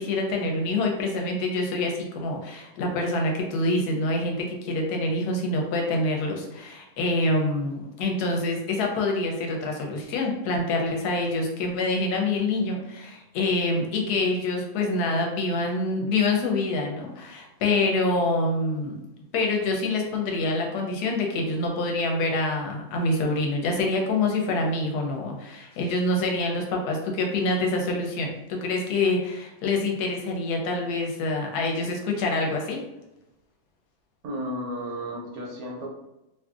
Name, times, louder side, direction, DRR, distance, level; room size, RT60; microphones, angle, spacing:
voice 1, 0.0-19.0 19.3-32.8, left 2 dB, 85° left, 1 dB, 1.2 m, -26 dB
voice 2, 34.2-35.9, equal, 75° right, -1 dB, 1.2 m, -33 dB
2.7 x 2.6 x 2.3 m, 0.93 s
omnidirectional pair, 1.6 m